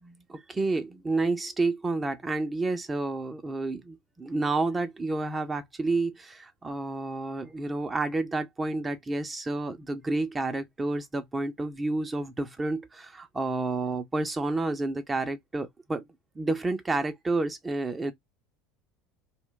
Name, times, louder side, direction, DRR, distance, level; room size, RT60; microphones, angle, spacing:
voice 1, 0.0-16.1 16.4-18.1, right 3 dB, 20° right, 0.5 m, -30 dB
2.2 x 2.2 x 3.7 m
hypercardioid pair, 75°, 0 cm